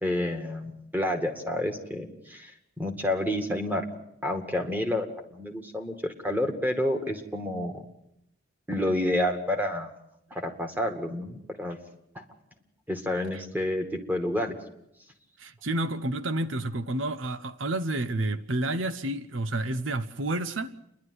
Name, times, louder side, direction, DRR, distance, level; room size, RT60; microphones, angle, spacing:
voice 1, 0.0-2.5 2.8-3.8 4.2-5.1 5.3-7.9 8.7-9.9 10.3-11.8 12.9-14.6, left 1 dB, 10° right, 2.1 m, -29 dB
voice 2, 15.4-20.8, right 1 dB, 75° right, 0.9 m, -30 dB
29.0 x 11.5 x 9.7 m
head